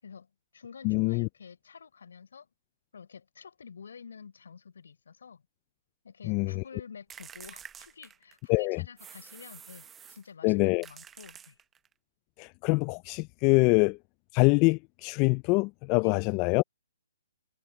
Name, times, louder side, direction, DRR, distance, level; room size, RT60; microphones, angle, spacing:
voice 1, 0.0-2.5 2.9-5.4 6.0-11.6 16.0-16.3, left 6 dB, 70° left, 6.5 m, -49 dB
voice 2, 0.8-1.3 6.3-6.6 8.5-8.8 10.4-10.9 12.4-14.0 14.3-16.6, left 29 dB, 30° left, 0.3 m, -25 dB
sound 1, 7.1-8.5 9.0-10.3 10.8-11.9, right 8 dB, 15° right, 0.8 m, -49 dB
hypercardioid pair, 145°, 0 cm